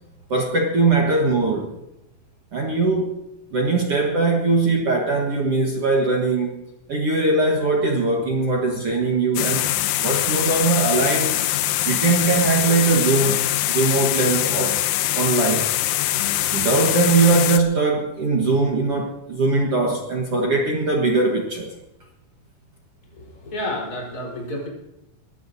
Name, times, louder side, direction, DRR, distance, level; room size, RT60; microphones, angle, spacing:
voice 1, 0.3-1.7 2.5-3.2 3.5-6.6 6.9-9.7 10.0-11.4 11.9-14.8 15.1-15.7 16.5-21.7, right 3 dB, 50° right, 0 dB, 1.9 m, -21 dB
sound 1, 9.4-17.6, left 14 dB, 80° left, 2.1 m, -23 dB
voice 2, 23.1-24.7, left 1 dB, 25° left, -2 dB, 4.5 m, -30 dB
23.0 x 18.0 x 2.7 m, 0.93 s
omnidirectional pair, 4.3 m